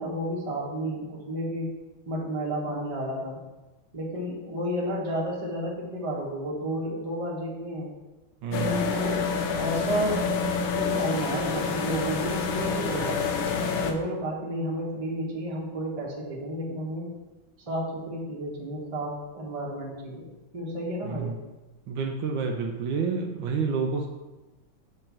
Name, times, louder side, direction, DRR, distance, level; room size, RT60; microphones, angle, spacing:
voice 1, 0.0-1.7 2.1-3.4 3.9-7.9 8.5-9.2 9.5-10.2 10.7-13.2 13.8-17.1 17.7-20.2 20.5-21.3, right 1 dB, 20° right, -4 dB, 1.0 m, -31 dB
voice 2, 8.4-8.9 21.1-21.4 21.9-24.1, right 5 dB, 75° right, 3 dB, 1.3 m, -29 dB
sound 1, 8.5-13.9, left 5 dB, 80° left, 1.4 m, -27 dB
6.5 x 3.2 x 5.9 m, 1.1 s
omnidirectional pair, 2.2 m